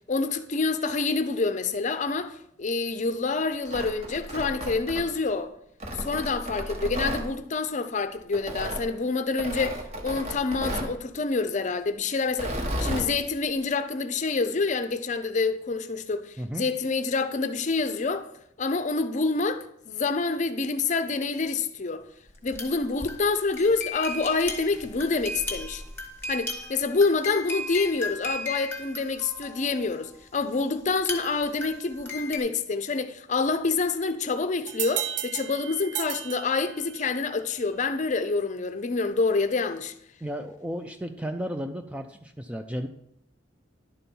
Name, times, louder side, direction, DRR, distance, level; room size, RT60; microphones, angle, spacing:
voice 1, 0.1-5.5 6.0-18.3 18.6-22.0 22.4-25.8 26.3-39.9, left 4 dB, 40° left, 0.6 m, -27 dB
Tearing, 3.5-5.3 5.8-7.2 8.3-8.8 9.4-10.9 12.3-13.1, right 1 dB, 35° right, 1.1 m, -33 dB
sound 1, 22.3-29.9 30.9-32.4, left 2 dB, 10° left, 1.3 m, -36 dB
sound 2, 34.7-37.2, right 10 dB, 65° right, 0.6 m, -34 dB
voice 2, 40.2-42.9, equal, 5° right, 0.4 m, -33 dB
11.0 x 4.3 x 5.3 m
head